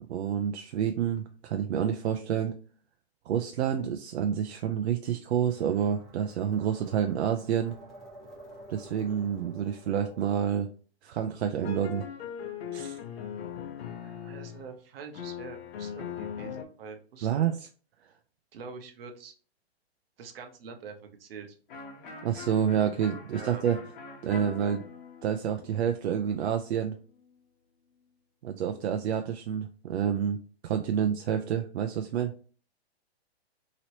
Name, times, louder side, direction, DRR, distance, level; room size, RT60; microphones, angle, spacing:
voice 1, 0.1-2.5 3.3-7.7 8.7-10.7 11.0-12.1 12.7-13.0 17.2-17.6 22.2-23.8 24.2-24.8 25.2-27.0 28.4-32.3, right 8 dB, 80° right, 6 dB, 0.5 m, -28 dB
sound 1, 5.5-10.6, right 1 dB, ahead, 0.9 m, -50 dB
sound 2, 11.6-14.7 15.1-16.7, left 9 dB, 75° left, 0.7 m, -39 dB
voice 2, 14.0-17.7 18.5-19.3 20.2-21.6 23.3-23.6, right 5 dB, 65° right, 5 dB, 0.9 m, -45 dB
Electric guitar, 21.7-27.3, left 4 dB, 50° left, 1.0 m, -46 dB
2.9 x 2.9 x 2.9 m, 0.40 s
hypercardioid pair, 145°, 32 cm